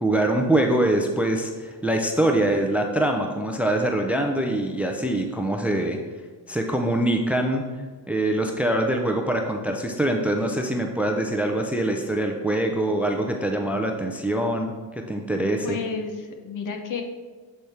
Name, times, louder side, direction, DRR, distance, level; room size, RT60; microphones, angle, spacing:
voice 1, 0.0-6.0 6.5-7.6 8.1-15.8, right 1 dB, 5° right, 3 dB, 0.5 m, -24 dB
voice 2, 15.6-17.0, left 5 dB, 50° left, 4 dB, 0.9 m, -31 dB
7.8 x 3.5 x 4.3 m, 1.5 s
cardioid pair, 100°, 39 cm